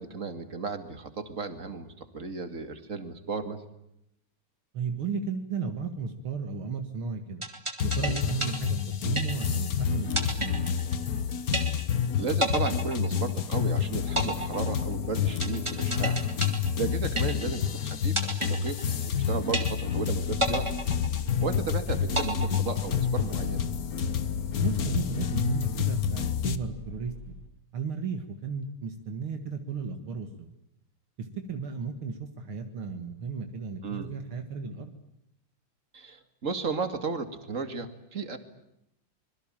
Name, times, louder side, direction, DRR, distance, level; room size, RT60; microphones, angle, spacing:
voice 1, 0.0-3.6 12.2-16.2 16.7-20.7 21.4-23.6 33.8-34.1 35.9-38.4, right 4 dB, 35° right, 9 dB, 2.6 m, -34 dB
voice 2, 4.7-7.4 7.8-10.6 17.2-17.4 21.4-21.5 24.6-27.3 27.7-30.5 31.2-34.9, right 5 dB, 70° right, 6 dB, 2.7 m, -34 dB
sound 1, 7.4-9.7 10.2-11.2 11.5-12.1 12.4-13.7 14.2-17.7 18.2-19.2 19.5-20.1 20.4-21.7 22.2-23.2, right 1 dB, 15° right, 2.2 m, -31 dB
sound 2, 7.8-26.6, left 7 dB, 50° left, 1.4 m, -29 dB
Vehicle, 20.1-27.5, left 2 dB, 70° left, 3.8 m, -42 dB
25.5 x 22.5 x 8.9 m, 0.82 s
omnidirectional pair, 2.4 m